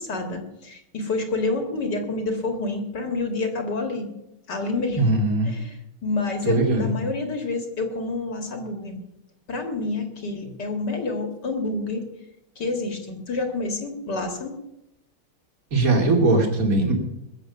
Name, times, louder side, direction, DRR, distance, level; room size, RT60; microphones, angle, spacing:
voice 1, 0.0-4.1 4.5-5.0 5.4-9.0 9.5-12.0 12.6-14.6, left 3 dB, 50° left, 5 dB, 2.4 m, -28 dB
voice 2, 5.0-5.5 6.4-6.9 15.7-16.9, right 2 dB, 40° right, 3 dB, 2.9 m, -20 dB
21.0 x 7.7 x 6.9 m, 0.85 s
omnidirectional pair, 2.4 m